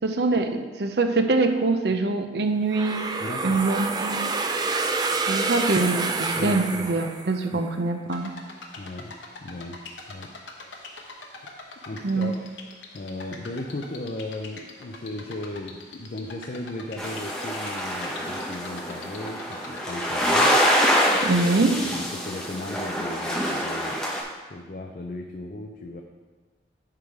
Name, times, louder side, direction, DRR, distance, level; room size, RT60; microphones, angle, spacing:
voice 1, 0.0-3.1 3.4-4.3 5.3-8.4 12.0-12.3 21.2-21.8, right 3 dB, 65° right, 6 dB, 0.6 m, -24 dB
sound 1, 2.7-7.6, right 3 dB, 20° right, 0.3 m, -28 dB
voice 2, 3.2-3.6 6.4-7.0 7.5-7.6 8.8-9.8 10.1-10.3 11.9-12.5 12.9-20.5 21.1-24.2 24.5-26.0, left 1 dB, 50° left, 2 dB, 0.5 m, -36 dB
sound 2, 8.1-21.7, left 3 dB, 90° left, 0.9 m, -43 dB
sound 3, 17.0-24.2, equal, 5° left, 0.9 m, -25 dB
10.5 x 3.5 x 4.7 m, 1.3 s
head